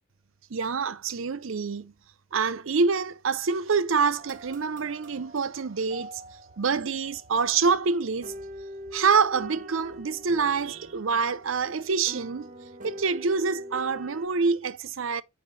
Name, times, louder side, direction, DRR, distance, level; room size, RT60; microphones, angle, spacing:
voice 1, 0.5-1.9 2.3-6.2 6.6-8.3 8.9-12.5 12.8-15.2, right 5 dB, 75° right, 0.6 m, -26 dB
sound 1, 4.2-14.3, equal, 40° right, 1.0 m, -44 dB
7.5 x 5.6 x 3.9 m
head